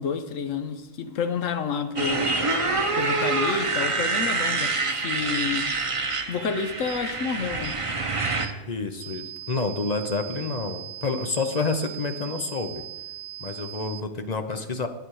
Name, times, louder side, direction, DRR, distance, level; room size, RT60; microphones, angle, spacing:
voice 1, 0.0-2.3 3.0-5.7 6.3-7.8, left 6 dB, 85° left, 9 dB, 1.3 m, -29 dB
Motorcycle, 2.0-8.5, right 3 dB, 30° right, 0.9 m, -26 dB
sound 1, 6.9-7.0 7.6-7.8 8.4-8.6 9.0-14.0, right 13 dB, 80° right, 1.0 m, -40 dB
voice 2, 8.7-12.8 13.4-14.9, left 3 dB, 35° left, 8 dB, 0.8 m, -29 dB
10.5 x 9.2 x 4.8 m, 1.0 s
omnidirectional pair, 1.3 m